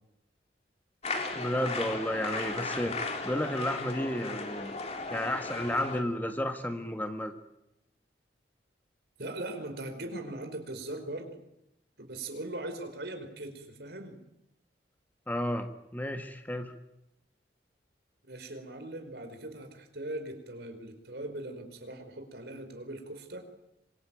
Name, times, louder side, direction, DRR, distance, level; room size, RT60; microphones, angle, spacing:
sound 1, 1.0-6.0, left 3 dB, 35° left, 3.3 m, -36 dB
voice 1, 1.3-4.8 5.1-7.3 15.3-16.7, left 1 dB, 10° left, 7 dB, 1.6 m, -32 dB
voice 2, 9.2-11.3 12.0-14.2 18.3-23.5, right 1 dB, 65° right, 6 dB, 5.0 m, -40 dB
26.0 x 23.0 x 9.1 m, 0.84 s
head